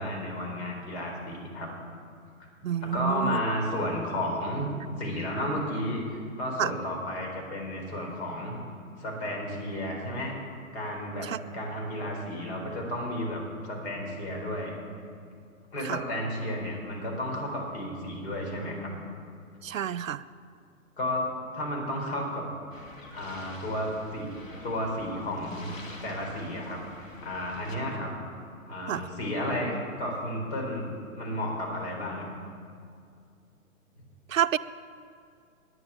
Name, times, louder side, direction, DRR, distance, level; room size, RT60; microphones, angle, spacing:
voice 1, 0.0-1.7 2.8-4.7 5.0-8.6 9.0-10.3 10.7-11.3 11.5-14.7 15.7-18.9 21.0-21.2 21.5-22.4 23.1-24.3 24.6-25.7 26.0-28.2 28.7-30.9 31.1-32.3, left 1 dB, 50° left, 0 dB, 4.2 m, -32 dB
voice 2, 2.6-3.4 6.6-6.7 11.2-11.4 15.8-16.0 19.6-20.2 28.9-29.0 34.3-34.6, right 10 dB, 70° right, 16 dB, 0.5 m, -28 dB
sound 1, 22.7-27.8, left 1 dB, 65° left, 2.2 m, -48 dB
11.0 x 9.8 x 8.9 m, 2.3 s
figure-of-eight pair, 115°, 42 cm